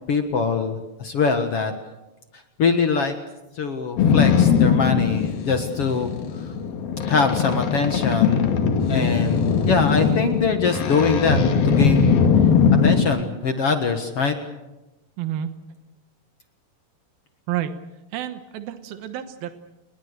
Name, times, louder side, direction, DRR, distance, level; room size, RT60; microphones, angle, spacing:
voice 1, 0.1-1.7 2.6-3.1 3.6-6.1 7.0-8.5 8.9-11.4 11.6-12.2 12.8-14.3, left 5 dB, 50° left, 6 dB, 2.0 m, -23 dB
Boat Water vehicle, 4.0-13.0, left 6 dB, 85° left, 3.9 m, -20 dB
voice 2, 15.2-15.5 17.5-17.7 18.1-19.5, right 11 dB, 90° right, 9 dB, 3.1 m, -29 dB
29.5 x 21.0 x 6.7 m, 1.0 s
omnidirectional pair, 4.1 m